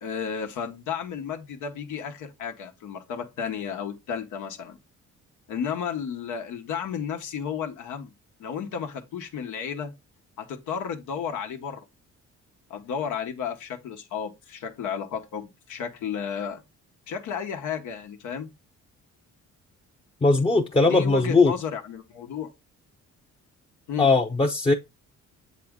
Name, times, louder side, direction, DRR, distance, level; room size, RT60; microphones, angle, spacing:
voice 1, 0.0-4.8 5.5-8.1 8.4-9.9 10.4-11.8 12.7-16.6 17.1-18.5 20.9-22.5 23.9-24.1, left 7 dB, 85° left, 1.1 m, -33 dB
voice 2, 20.2-21.5 24.0-24.7, left 3 dB, 20° left, 0.7 m, -19 dB
7.2 x 4.2 x 3.6 m
cardioid pair, 90°, 30 cm